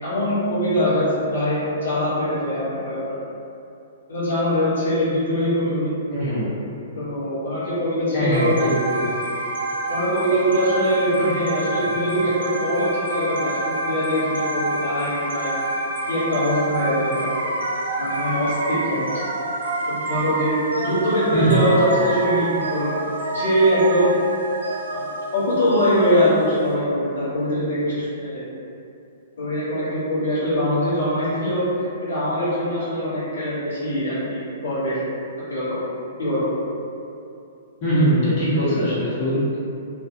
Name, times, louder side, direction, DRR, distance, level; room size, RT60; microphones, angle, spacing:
voice 1, 0.0-3.0 4.1-5.9 6.9-8.5 9.9-15.5 16.1-17.3 18.0-19.0 19.9-22.9 23.3-24.2 24.9-25.1 25.3-28.4 29.4-35.0 35.5-35.9 36.2-36.5, equal, 85° left, -10 dB, 1.1 m, -22 dB
voice 2, 6.1-6.5 8.1-9.1 21.3-21.6 37.8-39.6, right 1 dB, 45° left, -11 dB, 1.1 m, -21 dB
sound 1, 8.3-26.7, right 2 dB, 85° right, 0.4 m, -28 dB
2.5 x 2.2 x 2.6 m, 2.7 s
hypercardioid pair, 130°, 0 cm